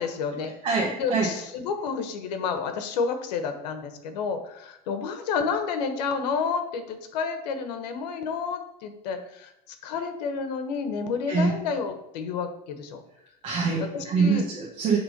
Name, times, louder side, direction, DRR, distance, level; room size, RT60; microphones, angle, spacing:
voice 1, 0.0-0.5 1.0-9.5 9.8-13.0 13.8-14.5, left 5 dB, 90° left, 7 dB, 1.2 m, -30 dB
voice 2, 0.6-1.3 11.3-11.5 13.4-15.0, right 4 dB, 25° right, -3 dB, 1.1 m, -24 dB
9.3 x 3.6 x 5.1 m, 0.85 s
supercardioid pair, 175°, 20 cm